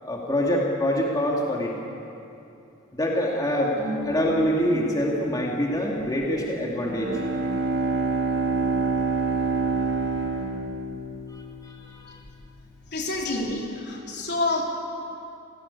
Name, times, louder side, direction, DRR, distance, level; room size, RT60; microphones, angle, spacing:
voice 1, 0.0-1.7 2.9-3.8 4.0-7.2 11.3-12.2, equal, 20° left, -2 dB, 2.5 m, -25 dB
Harp, 3.7-11.2 11.5-12.6 12.9-13.5, equal, 15° right, 5.0 m, -40 dB
Bowed string instrument, 6.8-11.4, right 4 dB, 60° right, 5.4 m, -26 dB
voice 2, 12.9-14.6, left 2 dB, 55° left, 0 dB, 3.8 m, -28 dB
28.0 x 19.0 x 8.5 m, 2.8 s
head